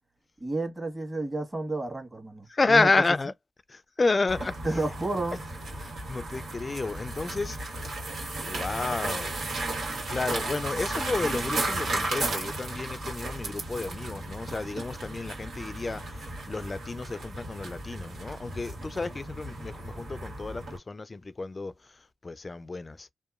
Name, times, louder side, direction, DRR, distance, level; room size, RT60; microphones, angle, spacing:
voice 1, 0.4-2.9 4.6-5.4, right 2 dB, 25° right, 1.3 m, -31 dB
voice 2, 2.5-3.3 3.7-4.8 5.8-7.6 8.4-9.4 9.9-23.1, left 3 dB, 40° left, 0.3 m, -30 dB
sound 1, 4.3-20.8, right 2 dB, 90° right, 1.4 m, -34 dB
2.8 x 2.2 x 2.4 m
cardioid pair, 55°, 0 cm